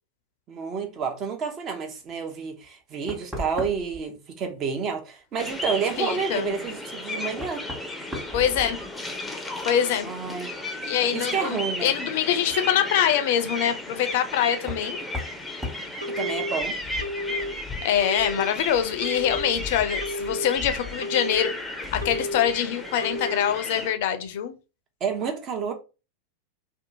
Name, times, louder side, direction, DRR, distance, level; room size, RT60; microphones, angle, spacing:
voice 1, 0.5-7.6 10.0-10.5 11.1-11.9 16.1-16.8 25.0-25.7, right 6 dB, 35° right, 0.7 m, -29 dB
Knock, 2.6-2.7 3.1-4.0 6.5-6.6 7.4-9.2 9.5-10.1 11.8-11.9 14.6-14.9 15.1-15.4 15.6-15.9, left 1 dB, 10° right, 1.2 m, -36 dB
sound 1, 5.4-23.9, left 1 dB, 5° left, 0.6 m, -34 dB
voice 2, 6.0-6.5 8.3-8.8 9.6-10.1 10.8-15.0 17.8-24.5, left 9 dB, 55° left, 0.4 m, -24 dB
Telephone, 16.0-16.5 17.0-17.5 18.0-18.5 19.0-19.5 20.0-20.5 21.0-21.5 22.0-22.5 23.0-23.5, left 1 dB, 85° right, 0.5 m, -32 dB
2.6 x 2.3 x 2.6 m
figure-of-eight pair, 95°, 0 cm